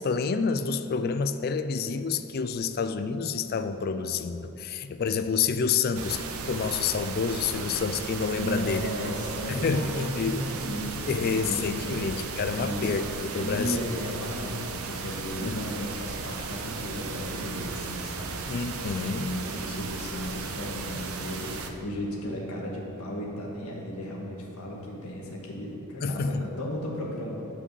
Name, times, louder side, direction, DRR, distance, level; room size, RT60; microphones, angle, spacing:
voice 1, 0.0-8.9 9.5-10.4 11.1-13.8 15.4-15.6 18.5-19.3 26.0-26.4, left 5 dB, 45° left, 11 dB, 0.3 m, -28 dB
sound 1, 5.9-21.7, right 4 dB, 75° right, 0.7 m, -36 dB
voice 2, 8.3-12.9 13.3-27.4, equal, 85° left, -3 dB, 1.6 m, -35 dB
9.7 x 4.9 x 7.1 m, 3.0 s
head